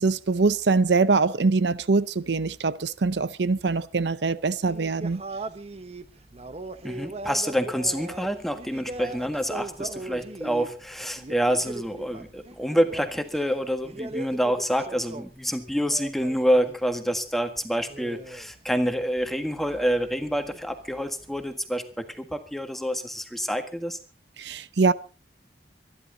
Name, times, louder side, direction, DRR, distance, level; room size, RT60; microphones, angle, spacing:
voice 1, 0.0-5.2 24.4-24.9, right 4 dB, 75° right, 0.7 m, -23 dB
sound 1, 4.7-16.8 17.1-21.5, right 2 dB, 35° right, 1.0 m, -40 dB
voice 2, 6.8-24.0, equal, ahead, 1.6 m, -27 dB
25.0 x 11.0 x 4.0 m
head